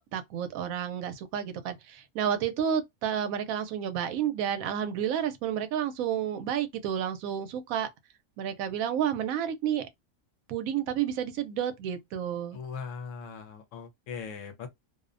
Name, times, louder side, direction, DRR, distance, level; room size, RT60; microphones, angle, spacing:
voice 1, 0.1-7.9 8.4-9.9 10.5-12.6, right 9 dB, 85° right, 1.0 m, -30 dB
voice 2, 12.5-14.7, left 6 dB, 70° left, 0.9 m, -40 dB
2.5 x 2.1 x 2.4 m
omnidirectional pair, 1.4 m